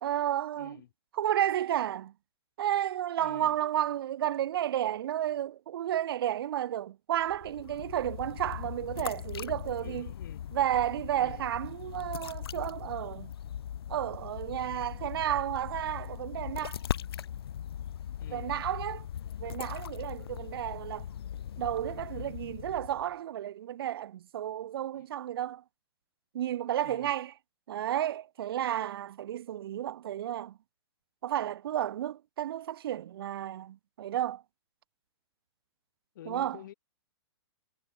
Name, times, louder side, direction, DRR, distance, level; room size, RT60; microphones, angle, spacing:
voice 1, 0.0-0.8 1.1-2.1 2.6-10.1 10.5-13.3 13.9-16.8 18.3-19.1 19.4-21.1 21.6-25.6 26.3-27.3 27.7-30.6 31.2-34.4 36.3-36.6, right 11 dB, 60° right, 0.4 m, -32 dB
voice 2, 0.6-0.9 3.2-3.6 9.8-10.5 11.2-11.5 18.2-18.6 24.9-25.1 26.8-27.1 36.1-36.7, left 12 dB, 50° left, 7.1 m, -49 dB
sound 1, 7.2-23.1, left 10 dB, 65° left, 2.4 m, -40 dB
hypercardioid pair, 175°, 14 cm